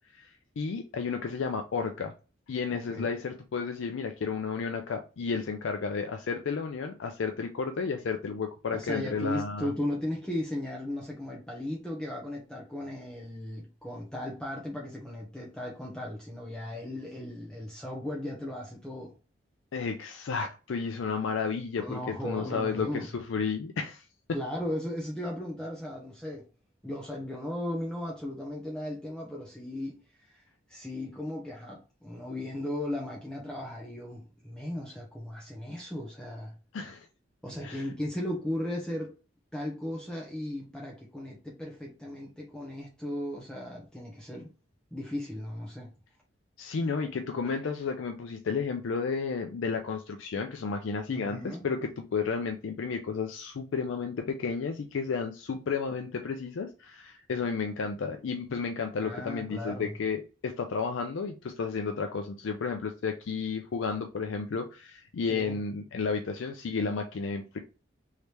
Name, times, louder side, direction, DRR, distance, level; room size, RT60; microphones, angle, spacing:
voice 1, 0.1-2.1 2.5-9.7 19.7-24.0 36.7-37.1 37.6-37.9 46.6-67.6, left 5 dB, 80° left, 0.4 m, -32 dB
voice 2, 8.7-19.1 21.8-23.1 24.3-26.4 26.8-30.0 30.3-30.4 30.7-36.5 37.4-39.1 39.5-44.5 44.9-45.9 51.1-51.6 59.0-59.9 65.3-65.6, left 1 dB, 5° left, 0.6 m, -36 dB
3.2 x 2.8 x 3.3 m
head